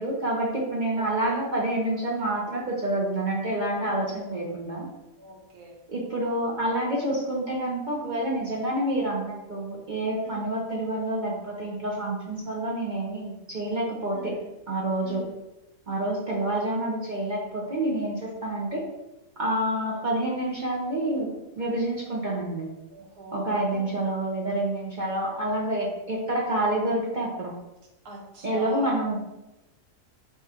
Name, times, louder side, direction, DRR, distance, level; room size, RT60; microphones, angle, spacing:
voice 1, 0.0-4.9 5.9-14.3 14.7-15.2 15.9-18.8 19.4-22.7 23.3-27.5 28.4-29.2, right 1 dB, 45° right, -4 dB, 0.6 m, -28 dB
voice 2, 0.9-1.4 3.7-4.1 5.2-5.7 10.2-10.4 14.1-14.5 15.0-15.3 19.8-20.0 22.9-24.0 28.0-28.9, right 2 dB, 75° right, -1 dB, 1.4 m, -43 dB
4.3 x 3.1 x 3.5 m, 0.98 s
omnidirectional pair, 1.7 m